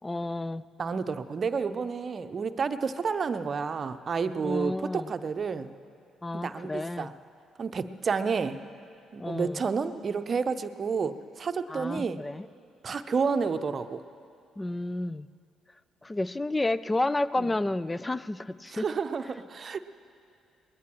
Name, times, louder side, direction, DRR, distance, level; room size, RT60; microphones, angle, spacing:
voice 1, 0.0-0.7 4.4-5.1 6.2-7.1 9.2-9.7 11.7-12.5 14.6-15.3 16.0-18.9, left 2 dB, 20° left, 17 dB, 0.4 m, -31 dB
voice 2, 0.8-5.7 6.4-7.1 7.6-8.6 9.1-12.2 12.8-14.0 17.4-17.5 18.7-19.8, right 5 dB, 45° right, 10 dB, 0.7 m, -30 dB
22.5 x 20.0 x 3.1 m, 2.5 s
hypercardioid pair, 50°, 0 cm